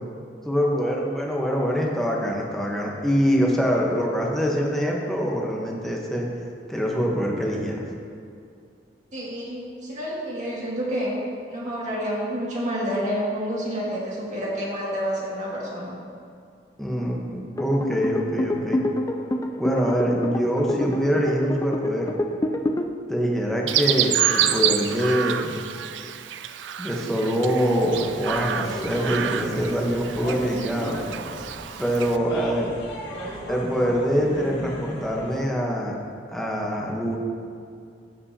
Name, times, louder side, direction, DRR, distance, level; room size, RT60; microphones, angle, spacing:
voice 1, 0.4-6.3 6.7-7.8 16.8-18.8 19.6-22.1 23.1-25.6 26.8-31.0 31.8-32.7 33.5-35.9 36.3-37.2, equal, ahead, -2 dB, 1.0 m, -24 dB
voice 2, 9.1-11.2 11.5-16.0, equal, 45° right, -5 dB, 2.1 m, -29 dB
sound 1, 17.6-22.9, left 1 dB, 20° left, 0.4 m, -27 dB
Chirp tweet, 23.7-32.2, right 10 dB, 80° right, 0.4 m, -28 dB
sound 2, 27.8-35.4, equal, 65° left, 1.9 m, -36 dB
15.0 x 5.3 x 2.8 m, 2.3 s
head